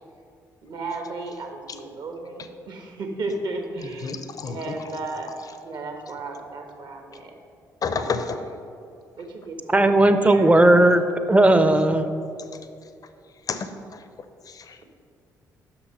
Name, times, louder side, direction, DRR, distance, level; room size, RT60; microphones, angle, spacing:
voice 1, 0.6-4.1 4.4-5.3 5.6-7.4 7.9-8.2 9.2-10.5 10.8-10.9, right 3 dB, 55° right, 4 dB, 1.1 m, -34 dB
voice 2, 3.8-4.8 7.8-8.4 13.5-14.0 14.5-14.8, left 5 dB, 45° left, 9 dB, 0.6 m, -30 dB
voice 3, 9.7-11.0 11.3-12.1, right 1 dB, 15° right, 9 dB, 0.6 m, -16 dB
6.1 x 5.8 x 5.4 m, 2.4 s
hypercardioid pair, 45°, 9 cm